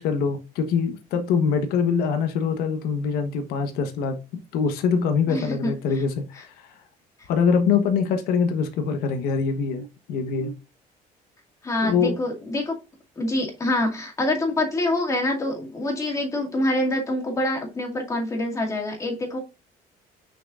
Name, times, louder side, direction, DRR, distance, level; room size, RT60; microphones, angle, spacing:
voice 1, 0.0-6.7 7.3-10.5 11.8-12.2, left 6 dB, 85° left, 1.2 m, -24 dB
voice 2, 5.3-6.0 11.6-12.8 13.2-19.4, left 1 dB, 20° left, 2.2 m, -26 dB
6.5 x 5.9 x 2.4 m
cardioid pair, 145°, 15 cm